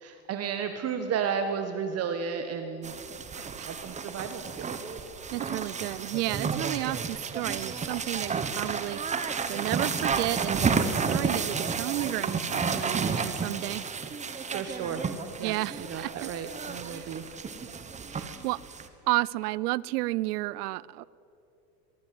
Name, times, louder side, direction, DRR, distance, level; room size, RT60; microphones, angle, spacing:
voice 1, 0.0-2.9 3.3-4.8 14.4-15.1 15.4-17.3, right 6 dB, 30° right, 7 dB, 1.5 m, -33 dB
sound 1, 2.8-18.9, right 5 dB, 15° right, 1.4 m, -32 dB
voice 2, 5.3-13.8 15.4-16.3 16.9-17.1 18.1-18.6 19.1-21.0, right 18 dB, 65° right, 22 dB, 0.7 m, -32 dB
23.5 x 23.5 x 7.8 m, 2.8 s
supercardioid pair, 135°, 50 cm